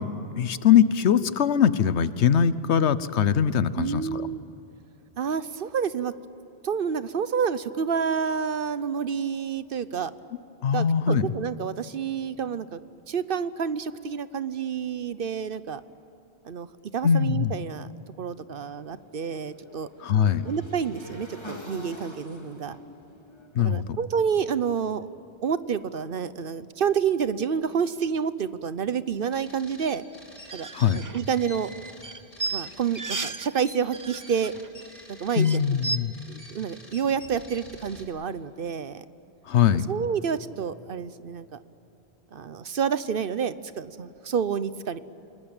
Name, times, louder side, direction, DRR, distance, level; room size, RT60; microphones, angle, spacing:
voice 1, 0.0-4.2 10.6-11.3 17.0-17.5 20.0-20.5 23.5-24.0 30.7-31.0 35.4-36.1 39.5-39.9, left 8 dB, 85° left, 15 dB, 1.1 m, -22 dB
voice 2, 3.8-4.4 5.2-6.1 6.6-10.1 10.7-12.8 13.1-15.8 16.4-16.7 16.9-17.9 18.2-19.9 20.4-22.8 23.6-25.1 25.4-30.0 30.5-30.7 30.9-31.8 32.5-34.6 35.2-35.5 36.3-39.0 39.9-41.6 42.3-45.0, right 7 dB, 60° right, 14 dB, 0.9 m, -29 dB
Motorcycle / Engine, 18.5-24.6, left 1 dB, 25° left, 2.7 m, -45 dB
sound 1, 29.3-38.0, left 1 dB, 60° left, 4.3 m, -48 dB
sound 2, 30.4-33.5 33.8-34.7 35.0-35.1 35.3-36.0, right 3 dB, 30° right, 0.4 m, -34 dB
28.0 x 20.0 x 8.9 m, 2.9 s
omnidirectional pair, 1.1 m